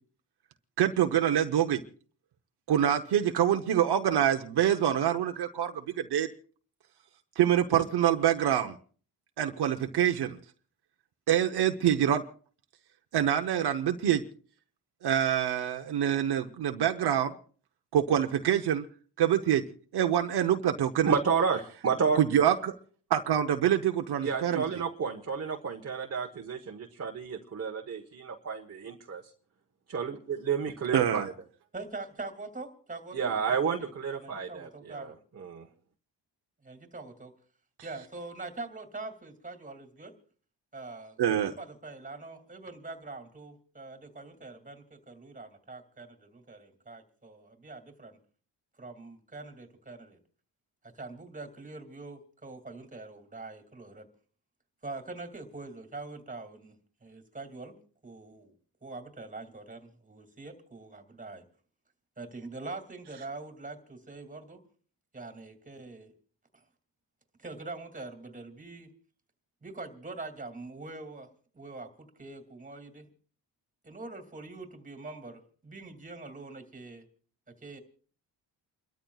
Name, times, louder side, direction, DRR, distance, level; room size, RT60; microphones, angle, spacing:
voice 1, 0.8-1.8 2.7-6.3 7.4-8.8 9.4-10.4 11.3-12.2 13.1-14.2 15.0-17.3 17.9-18.8 19.2-19.6 19.9-21.1 22.2-22.8 23.1-24.6 30.9-31.3 41.2-41.5, right 10 dB, 70° right, 5 dB, 0.9 m, -25 dB
voice 2, 21.0-22.2 24.2-29.2 29.9-31.3 33.1-35.7, right 6 dB, 35° right, 2 dB, 1.2 m, -31 dB
voice 3, 31.7-35.2 36.6-37.3 37.8-40.1 40.7-48.2 48.8-50.2 50.8-54.1 54.8-57.8 58.0-58.6 58.8-61.4 62.2-64.6 65.1-66.1 66.5-66.6 67.4-68.9 69.6-73.1 73.8-77.0 77.6-77.8, right 3 dB, 20° right, 6 dB, 2.5 m, -44 dB
29.5 x 13.0 x 2.4 m, 0.42 s
cardioid pair, 90°, 41 cm